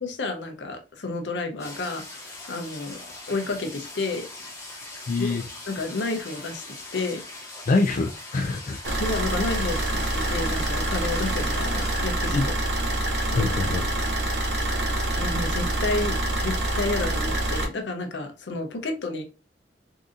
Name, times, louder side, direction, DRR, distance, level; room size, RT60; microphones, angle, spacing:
voice 1, 0.0-3.0 3.3-4.3 5.2-6.6 6.9-7.5 9.0-12.4 13.3-13.5 15.2-19.2, left 3 dB, 75° left, 0.7 m, -31 dB
sound 1, 1.6-12.0, left 2 dB, 15° left, 0.8 m, -41 dB
voice 2, 5.1-5.4 7.7-8.9 12.3-12.5 13.3-13.9, left 3 dB, 45° left, 0.3 m, -25 dB
Car / Idling, 8.8-17.7, right 1 dB, 70° right, 0.8 m, -26 dB
3.7 x 2.7 x 2.5 m
head